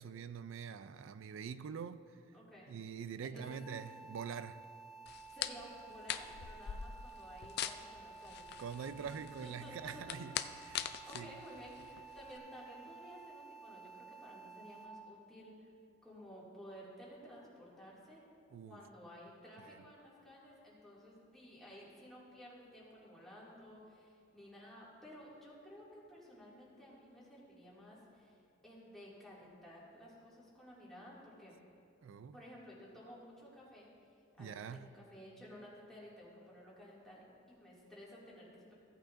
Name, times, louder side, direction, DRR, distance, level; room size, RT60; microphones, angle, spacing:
voice 1, 0.0-2.2 2.7-4.6 8.6-11.4 18.5-18.8 19.6-19.8 32.0-32.4 34.4-34.9, right 7 dB, 80° right, 0.3 m, -45 dB
voice 2, 2.3-2.7 3.2-3.6 5.3-8.5 8.9-9.1 9.4-10.2 11.1-15.7 16.0-18.3 18.6-31.6 32.3-33.9 34.4-38.7, equal, ahead, 2.2 m, -54 dB
sound 1, 3.4-14.9, right 4 dB, 35° left, 2.2 m, -54 dB
sound 2, 5.1-12.4, left 10 dB, 55° left, 0.3 m, -44 dB
15.5 x 8.8 x 2.5 m
head